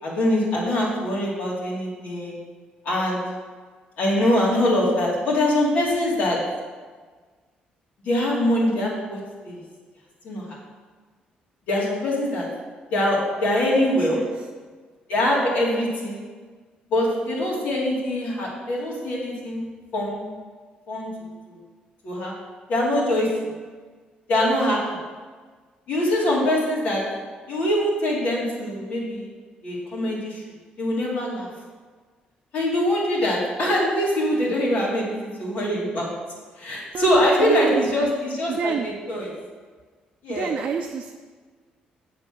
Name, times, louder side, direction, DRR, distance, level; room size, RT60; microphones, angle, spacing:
voice 1, 0.0-2.4 2.8-3.2 4.0-6.4 8.0-9.2 9.4-9.6 10.2-10.4 11.7-12.5 12.9-14.2 15.1-16.2 16.9-20.4 20.9-21.1 21.5-21.6 22.0-22.3 22.7-23.3 24.3-24.8 25.9-27.0 27.5-29.3 29.6-30.4 30.8-31.5 32.5-36.1 36.6-39.3 40.2-40.5, left 1 dB, 65° left, -5 dB, 2.9 m, -23 dB
voice 2, 37.4-38.1 38.5-38.9 40.3-41.1, right 7 dB, 45° right, 3 dB, 0.5 m, -28 dB
7.7 x 6.9 x 6.2 m, 1.5 s
cardioid pair, 145°, 3 cm